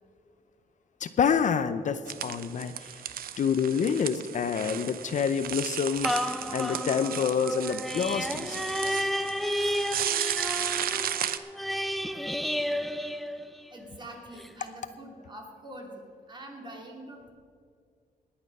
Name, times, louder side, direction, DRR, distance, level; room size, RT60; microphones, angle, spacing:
voice 1, 1.0-3.0 3.4-9.1, left 7 dB, 50° left, 11 dB, 0.6 m, -28 dB
sound 1, 2.1-11.4, right 10 dB, 70° right, 0.7 m, -34 dB
sound 2, 6.0-13.9 14.4-14.5, equal, ahead, 0.5 m, -32 dB
voice 2, 13.7-17.3, right 1 dB, 30° right, 1 dB, 2.8 m, -45 dB
19.5 x 8.8 x 5.4 m, 2.2 s
cardioid pair, 125°, 16 cm